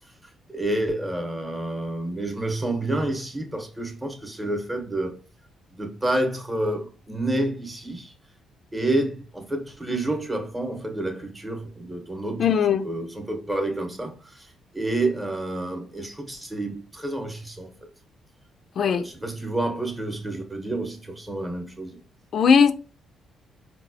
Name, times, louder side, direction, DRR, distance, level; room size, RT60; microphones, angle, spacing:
voice 1, 0.5-5.2 5.7-8.1 8.7-17.7 18.8-22.0, right 1 dB, 15° right, 0.9 m, -29 dB
voice 2, 12.4-12.8 18.8-19.0 22.3-22.7, left 6 dB, 60° left, 0.3 m, -18 dB
3.9 x 2.2 x 2.6 m
cardioid pair, 90°, 0 cm